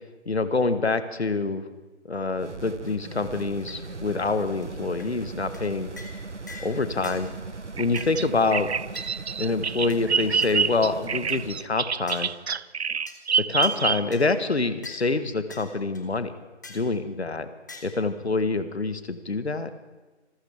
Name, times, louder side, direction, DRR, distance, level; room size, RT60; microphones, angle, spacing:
voice 1, 0.3-1.6 2.0-5.9 6.6-7.3 7.8-8.7 9.4-12.3 13.5-16.3 16.7-17.5 17.8-19.7, left 3 dB, 65° left, 11 dB, 1.3 m, -26 dB
sound 1, 2.3-11.7, right 3 dB, 85° right, 1.0 m, -39 dB
sound 2, 2.9-3.0 3.2-3.3 3.7-3.8 4.2-4.3 4.6-4.7 5.0-5.1 5.5-5.7 6.0-6.2 6.5-6.7 7.0-7.2 7.9-8.2 8.9-9.1 9.9-10.0 10.4-10.5 11.0-11.4 12.1-12.3 13.1-13.2 13.6-13.8 14.1-14.3 14.8-15.0 15.5-15.7 15.9-16.0 16.6-16.9 17.7-17.8, left 3 dB, 15° left, 0.9 m, -44 dB
Bird vocalization bird call bird song, 7.8-14.3, right 6 dB, 70° right, 0.5 m, -27 dB
26.5 x 14.5 x 3.4 m, 1.2 s
figure-of-eight pair, 155°, 35 cm